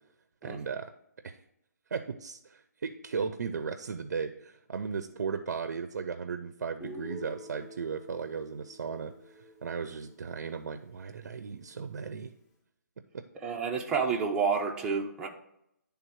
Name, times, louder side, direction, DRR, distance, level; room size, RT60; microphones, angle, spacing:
voice 1, 0.4-0.9 1.2-1.4 1.9-12.3 13.1-13.2, right 5 dB, 70° right, 9 dB, 0.5 m, -36 dB
Guitar, 6.8-10.8, left 1 dB, 20° left, 1.3 m, -48 dB
voice 2, 13.4-15.3, right 5 dB, 10° right, -1 dB, 0.5 m, -29 dB
10.5 x 3.5 x 4.7 m, 0.79 s
hypercardioid pair, 160°, 10 cm